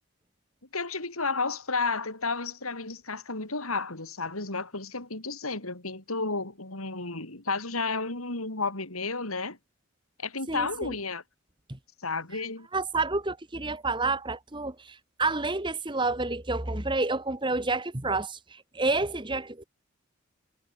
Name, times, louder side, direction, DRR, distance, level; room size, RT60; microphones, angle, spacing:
voice 1, 0.7-9.6 10.2-11.2 12.0-12.7, left 3 dB, 90° left, 4.8 m, -32 dB
voice 2, 12.7-19.6, right 3 dB, 20° right, 1.4 m, -29 dB
head